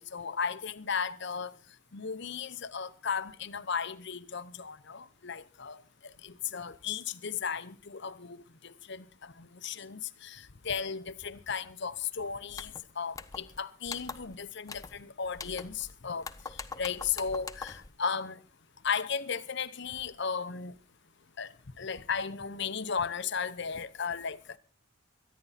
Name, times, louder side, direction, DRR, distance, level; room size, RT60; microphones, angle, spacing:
voice 1, 0.0-1.5 1.9-5.8 6.2-16.3 16.8-18.4 18.8-20.7 21.4-24.6, left 6 dB, 50° left, 0.8 m, -35 dB
sound 1, 12.5-12.8 13.2-13.6 13.9-14.4 14.7-15.0 15.3-15.9 16.2-17.9, left 4 dB, 15° left, 0.6 m, -43 dB
23.5 x 10.5 x 4.1 m
head